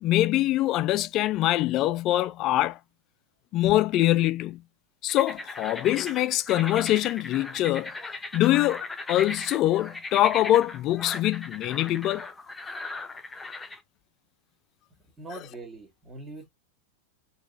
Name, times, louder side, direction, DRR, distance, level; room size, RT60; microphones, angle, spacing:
voice 1, 0.0-2.8 3.5-4.6 5.0-7.9 8.3-8.8 9.1-12.3, left 14 dB, 35° left, 0.3 m, -24 dB
sound 1, 5.1-13.8, left 3 dB, 10° left, 0.8 m, -38 dB
voice 2, 15.2-16.5, right 2 dB, 10° right, 2.1 m, -42 dB
4.4 x 2.9 x 2.6 m
figure-of-eight pair, 90°, 0 cm